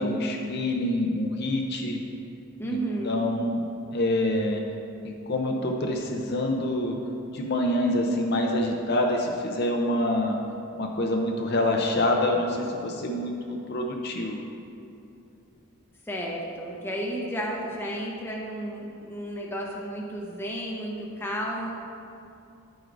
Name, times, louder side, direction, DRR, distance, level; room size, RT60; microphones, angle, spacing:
voice 1, 0.0-2.0 2.7-3.6 3.9-4.6 5.0-7.0 7.3-10.4 10.7-14.4, left 1 dB, 45° left, 1 dB, 0.6 m, -26 dB
voice 2, 2.6-3.2 16.1-21.7, right 1 dB, 10° left, -2 dB, 0.8 m, -32 dB
10.5 x 7.8 x 2.6 m, 2.6 s
head